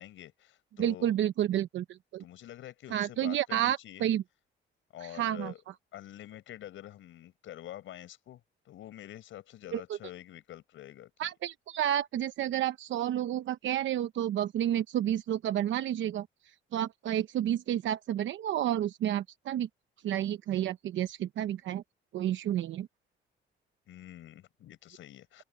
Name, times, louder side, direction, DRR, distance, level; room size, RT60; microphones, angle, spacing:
voice 1, 0.0-1.2 2.2-4.1 4.9-5.6 5.9-11.1 23.9-25.4, left 13 dB, 80° left, 6.2 m, -47 dB
voice 2, 0.8-2.2 2.9-4.2 5.0-5.5 9.7-9.8 11.2-16.3 16.7-19.7 20.0-21.8 22.1-22.9, right 11 dB, 75° right, 0.9 m, -30 dB
open air
cardioid pair, 90°, 20 cm